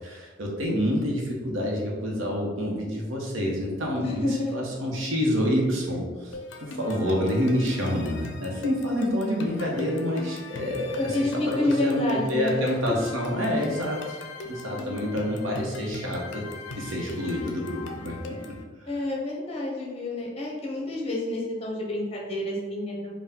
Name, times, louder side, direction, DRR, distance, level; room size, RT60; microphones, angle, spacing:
voice 1, 0.0-6.3 6.6-11.2 11.5-14.2 14.4-16.4 16.8-18.5, equal, 85° right, -2 dB, 1.0 m, -27 dB
voice 2, 3.9-4.6 11.0-12.9 18.9-23.1, left 2 dB, 30° left, -2 dB, 0.8 m, -29 dB
sound 1, 6.3-18.6, left 2 dB, 65° left, 0.4 m, -40 dB
4.5 x 2.3 x 3.6 m, 1.4 s
head